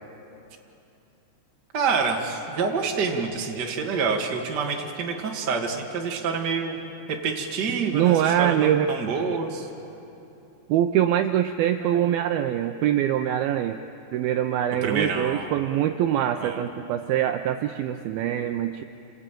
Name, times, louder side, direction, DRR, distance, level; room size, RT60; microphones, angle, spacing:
voice 1, 1.7-6.8 7.1-9.7 11.8-12.0 14.8-15.5 16.4-16.6, right 5 dB, 45° right, 1 dB, 1.4 m, -27 dB
voice 2, 7.7-8.9 10.7-13.8 14.1-18.8, right 11 dB, 90° right, 7 dB, 2.1 m, -24 dB
28.0 x 19.0 x 9.1 m, 2.8 s
omnidirectional pair, 5.1 m